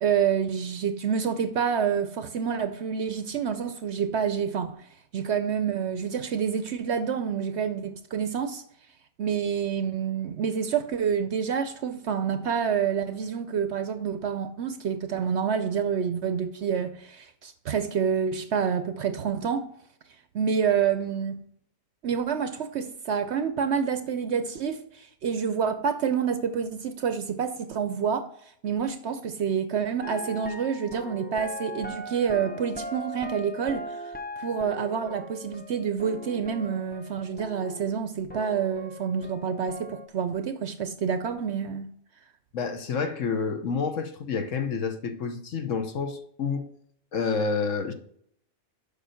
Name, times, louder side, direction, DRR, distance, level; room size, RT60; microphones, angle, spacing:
voice 1, 0.0-4.8 5.1-8.6 9.2-19.7 20.3-21.4 22.0-28.3 28.6-34.0 34.4-41.9, right 7 dB, 60° right, 0.8 m, -28 dB
sound 1, 30.0-38.0 38.3-40.1, left 1 dB, 15° left, 0.4 m, -40 dB
voice 2, 42.5-46.7 47.1-47.9, left 5 dB, 60° left, 1.2 m, -29 dB
7.2 x 5.6 x 5.6 m
omnidirectional pair, 1.5 m